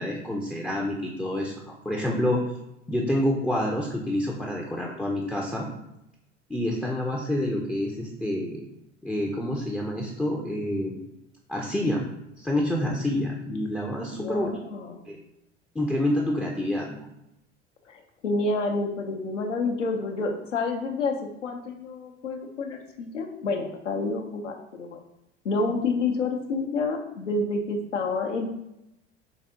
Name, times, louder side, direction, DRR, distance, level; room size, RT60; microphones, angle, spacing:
voice 1, 0.0-2.4 2.9-5.7 6.5-8.6 9.0-11.0 11.5-12.1 12.4-14.5 15.1-15.2 15.7-17.1, left 1 dB, 5° left, -1 dB, 0.5 m, -28 dB
voice 2, 14.1-15.1 17.9-25.0 25.4-28.5, left 3 dB, 80° left, 2 dB, 0.7 m, -29 dB
4.7 x 3.4 x 2.7 m, 0.86 s
figure-of-eight pair, 70°, 36 cm